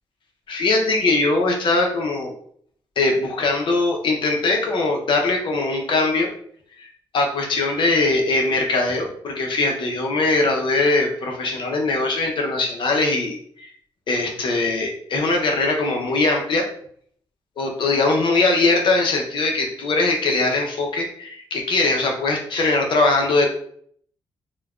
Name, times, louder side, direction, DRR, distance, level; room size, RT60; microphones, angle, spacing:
voice 1, 0.5-2.3 3.0-6.3 6.8-6.9 7.1-13.7 14.1-16.7 17.6-23.5, left 3 dB, 60° left, 1 dB, 0.7 m, -21 dB
3.2 x 2.2 x 2.4 m, 0.62 s
cardioid pair, 85°, 9 cm